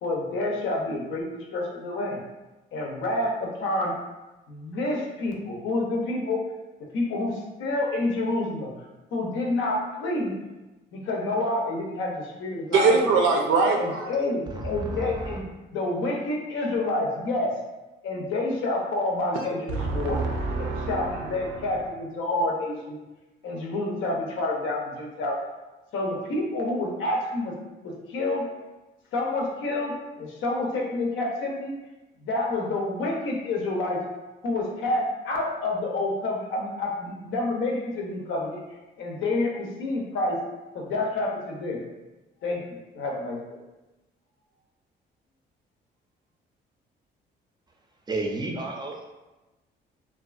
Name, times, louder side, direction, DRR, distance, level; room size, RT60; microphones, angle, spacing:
voice 1, 0.0-2.2 2.7-3.9 4.5-6.4 6.9-8.7 9.1-10.3 10.9-13.0 13.7-15.4 15.7-17.5 18.0-20.2 20.6-23.0 23.4-25.4 25.9-27.5 27.8-28.4 29.1-31.7 32.2-34.0 34.4-38.6 39.0-40.4 40.7-41.8 42.4-43.6, left 2 dB, 80° left, -1 dB, 0.6 m, -28 dB
voice 2, 12.7-14.1 19.3-19.5 19.7-21.4, right 4 dB, 80° right, 1 dB, 0.5 m, -23 dB
voice 3, 14.5-15.4 48.1-49.1, right 2 dB, 20° right, 1 dB, 0.4 m, -32 dB
2.6 x 2.3 x 2.4 m, 1.1 s
cardioid pair, 90°, 20 cm